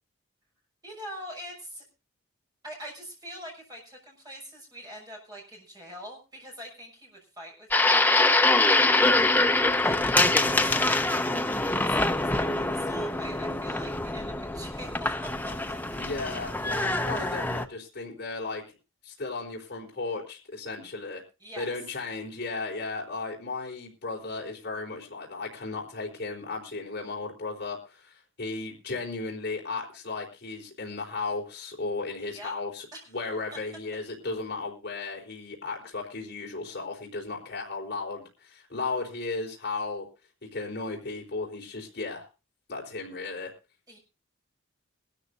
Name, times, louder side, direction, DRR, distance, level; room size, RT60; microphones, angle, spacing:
voice 1, 0.8-1.8 2.6-9.0 9.8-15.5 17.1-17.5 21.4-21.7 32.2-32.5 32.9-33.1 43.9-44.0, equal, 20° right, 0 dB, 6.1 m, -44 dB
sound 1, 7.7-17.6, left 2 dB, 10° left, 0.7 m, -24 dB
voice 2, 16.0-18.6 19.0-21.2 21.6-40.0 40.5-42.3 42.7-43.5, left 3 dB, 50° left, -2 dB, 4.2 m, -35 dB
22.0 x 13.0 x 2.6 m, 0.29 s
head